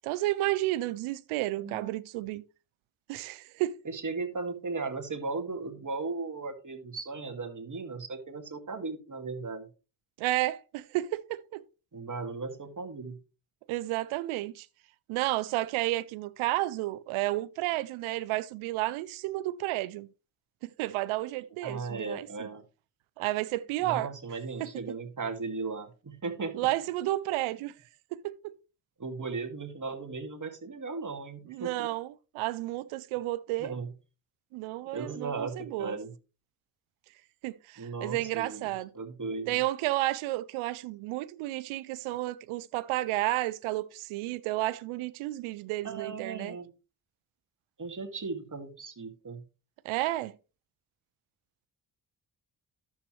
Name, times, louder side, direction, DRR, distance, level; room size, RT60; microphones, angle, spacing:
voice 1, 0.0-2.4 3.1-3.8 10.2-11.6 13.7-14.7 15.1-20.1 20.6-22.5 23.2-24.1 24.6-24.7 26.6-27.7 28.1-28.5 31.5-33.7 34.5-36.0 37.4-38.9 39.5-46.6 49.8-50.3, right 17 dB, 85° right, 0.5 m, -32 dB
voice 2, 1.6-2.0 3.8-9.6 11.9-13.2 21.6-22.6 23.8-26.7 29.0-31.9 33.6-33.9 34.9-36.1 37.8-39.6 45.8-46.7 47.8-49.4, right 4 dB, 40° right, 2.1 m, -37 dB
10.5 x 7.5 x 3.1 m
supercardioid pair, 45°, 47 cm